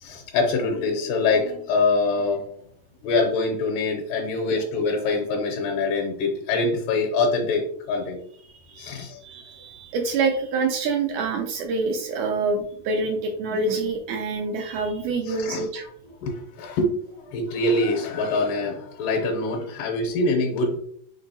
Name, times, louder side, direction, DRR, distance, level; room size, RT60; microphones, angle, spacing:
voice 1, 0.0-2.5 3.0-8.2 8.8-9.2 15.3-15.7 16.2-16.9 17.2-20.8, left 3 dB, 80° left, 0 dB, 2.3 m, -24 dB
voice 2, 8.6-15.8, right 3 dB, 85° right, 3 dB, 1.7 m, -26 dB
5.3 x 3.6 x 2.6 m, 0.67 s
omnidirectional pair, 3.9 m